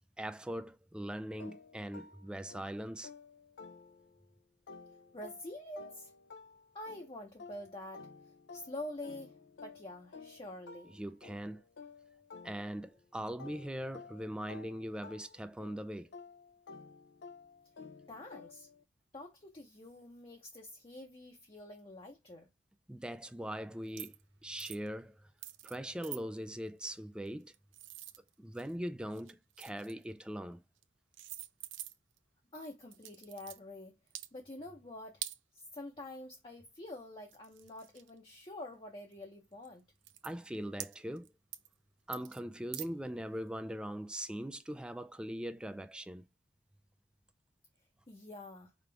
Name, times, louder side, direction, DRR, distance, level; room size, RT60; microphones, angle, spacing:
voice 1, 0.2-3.1 10.9-11.6 12.4-16.1 22.9-24.1 24.4-25.2 25.6-27.5 28.4-30.6 40.2-41.3 42.1-46.2, equal, 5° right, 0.3 m, -41 dB
sound 1, 1.4-4.3 4.7-13.0 13.4-18.8, left 4 dB, 65° left, 0.4 m, -53 dB
voice 2, 5.1-6.1 6.7-8.1 8.5-11.0 18.1-18.7 19.1-22.5 32.5-34.0 34.3-35.2 35.5-39.8 48.1-48.7, left 1 dB, 30° left, 0.7 m, -47 dB
sound 2, 23.9-24.2 24.6-24.9 25.4-25.8 26.0-26.2 27.3-28.7 29.1-30.0 30.8-30.9 31.1-32.2 32.9-33.6 34.1-34.3 35.2-35.4 36.9-37.0 37.3-38.4 39.1-39.2 39.6-39.7 40.0-40.3 40.8-41.3 41.5-41.7 42.1-42.4 42.7-42.9, right 14 dB, 85° right, 0.5 m, -45 dB
5.1 x 2.4 x 3.3 m
head